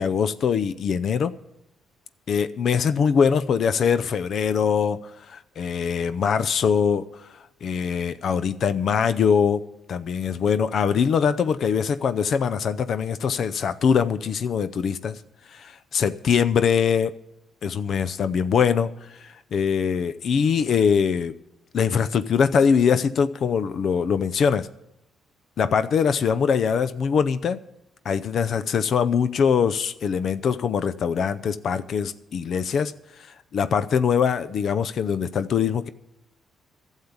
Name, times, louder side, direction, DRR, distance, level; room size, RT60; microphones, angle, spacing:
voice 1, 0.0-1.3 2.3-5.0 5.3-7.1 7.6-9.6 9.9-15.2 15.5-17.1 17.6-21.3 21.7-24.7 25.6-27.6 28.0-32.9 33.2-35.9, left 6 dB, 60° left, 13 dB, 0.5 m, -22 dB
11.5 x 7.3 x 9.7 m, 0.84 s
cardioid pair, 90°, 0 cm